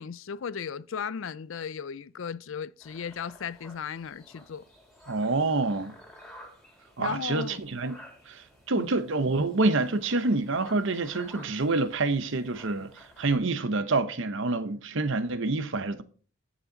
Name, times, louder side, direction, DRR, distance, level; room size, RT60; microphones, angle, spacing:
voice 1, 0.0-4.7 7.0-7.6 8.8-8.9, left 6 dB, 60° left, 0.4 m, -36 dB
sound 1, 2.8-13.4, equal, ahead, 3.2 m, -52 dB
voice 2, 5.1-5.9 7.0-8.0 8.3-16.0, right 3 dB, 55° right, 0.9 m, -27 dB
13.5 x 7.2 x 3.9 m
head